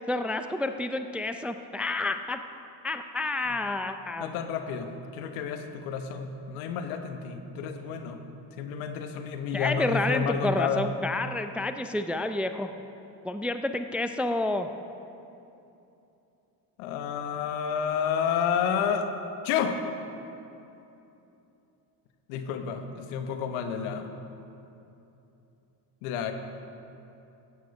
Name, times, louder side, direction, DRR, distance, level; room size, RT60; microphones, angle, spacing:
voice 1, 0.1-2.4 2.8-4.3 9.5-12.7 13.2-14.7, left 2 dB, 5° right, 8 dB, 0.4 m, -29 dB
voice 2, 4.2-8.2 8.6-10.8 16.8-19.1 19.4-19.8 22.3-24.1 26.0-26.3, left 7 dB, 75° left, 7 dB, 1.3 m, -30 dB
14.5 x 9.4 x 5.4 m, 2.8 s
supercardioid pair, 75°, 50 cm